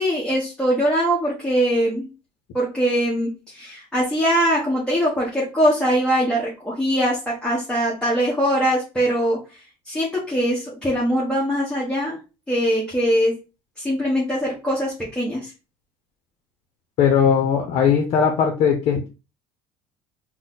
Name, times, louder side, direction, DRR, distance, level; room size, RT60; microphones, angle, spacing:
voice 1, 0.0-2.1 2.5-9.4 9.8-12.2 12.5-13.3 13.8-15.5, equal, 10° left, -6 dB, 1.4 m, -22 dB
voice 2, 17.0-19.1, left 7 dB, 60° left, 3 dB, 0.8 m, -19 dB
4.1 x 2.2 x 3.9 m, 0.30 s
cardioid pair, 125°, 11 cm